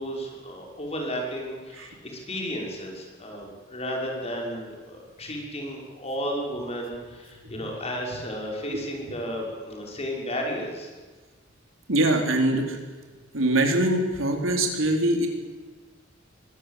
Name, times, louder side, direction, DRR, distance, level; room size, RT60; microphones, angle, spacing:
voice 1, 0.0-10.9, equal, 30° left, 0 dB, 5.9 m, -33 dB
voice 2, 11.9-12.8 13.3-15.3, right 1 dB, 90° right, 3 dB, 4.0 m, -23 dB
24.0 x 18.0 x 8.4 m, 1.3 s
head